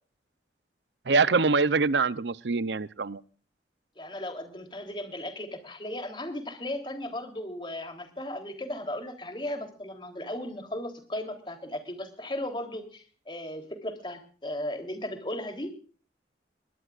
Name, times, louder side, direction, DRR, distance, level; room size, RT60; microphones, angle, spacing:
voice 1, 1.1-3.2, right 4 dB, 90° right, 16 dB, 0.7 m, -24 dB
voice 2, 4.0-15.8, left 1 dB, 25° left, 5 dB, 3.5 m, -36 dB
21.5 x 19.5 x 2.5 m, 0.41 s
head